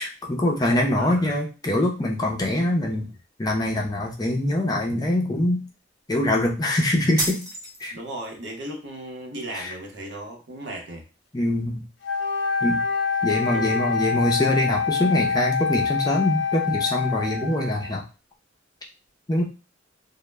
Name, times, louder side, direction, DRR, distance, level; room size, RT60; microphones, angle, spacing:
voice 1, 0.0-3.1 3.4-5.6 6.1-7.4 7.8-7.9 9.5-9.7 11.3-11.8 12.6-12.8 13.2-18.0 19.3-19.4, left 1 dB, 20° left, -1 dB, 0.4 m, -23 dB
voice 2, 1.0-1.4 2.9-3.1 7.9-11.1 13.3-13.7, right 1 dB, 65° right, 1 dB, 0.7 m, -36 dB
sound 1, 7.2-8.2, right 1 dB, 20° right, 0.8 m, -30 dB
Wind instrument woodwind instrument, 12.0-17.9, left 5 dB, 75° left, 0.5 m, -26 dB
2.0 x 2.0 x 3.2 m, 0.31 s
head